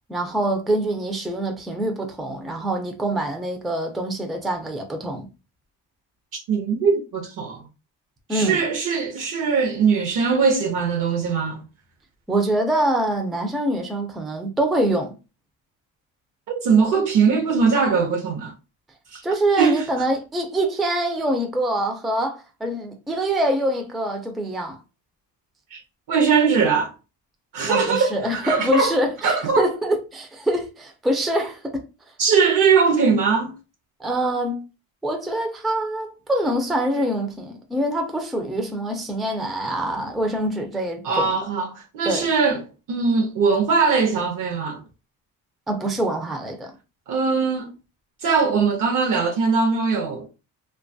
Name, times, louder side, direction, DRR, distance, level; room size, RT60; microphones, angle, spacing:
voice 1, 0.1-5.2 8.3-8.6 12.3-15.1 19.2-24.8 27.7-31.8 34.0-34.6 35.0-41.3 42.1-42.3 45.7-46.7, right 1 dB, ahead, 0.3 m, -25 dB
voice 2, 6.3-7.6 8.3-11.6 16.5-18.5 19.1-19.2 19.6-19.8 25.7-25.8 26.1-26.9 27.5-28.9 29.2-29.7 32.2-33.6 41.0-42.6 42.9-44.8 47.1-47.7 48.2-50.3, right 5 dB, 60° right, 0.6 m, -21 dB
2.6 x 2.3 x 2.6 m
cardioid pair, 130°, 36 cm